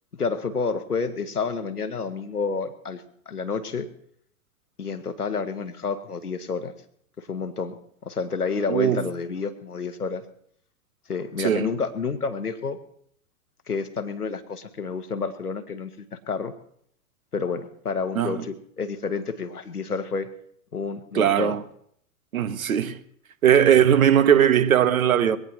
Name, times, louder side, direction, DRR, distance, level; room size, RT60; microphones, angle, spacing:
voice 1, 0.2-3.9 4.8-6.7 7.2-7.8 8.0-10.2 11.1-12.8 13.7-16.5 17.3-20.3 20.7-21.6, left 5 dB, 85° left, 1.4 m, -29 dB
voice 2, 8.7-9.0 11.4-11.7 18.1-18.4 21.1-21.6 22.3-23.0 23.4-25.4, right 9 dB, 70° right, 1.2 m, -19 dB
22.0 x 17.5 x 2.8 m
figure-of-eight pair, 100°, 44 cm